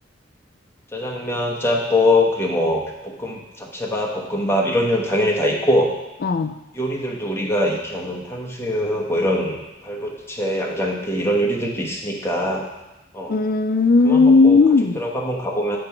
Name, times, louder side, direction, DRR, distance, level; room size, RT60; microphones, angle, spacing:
voice 1, 0.9-5.9 6.7-12.6 13.1-13.4 14.0-14.6 15.0-15.8, left 1 dB, 15° left, -2 dB, 1.0 m, -23 dB
voice 2, 6.2-6.5 13.3-15.0, left 4 dB, 50° left, 10 dB, 0.4 m, -15 dB
7.7 x 4.9 x 4.5 m, 0.98 s
head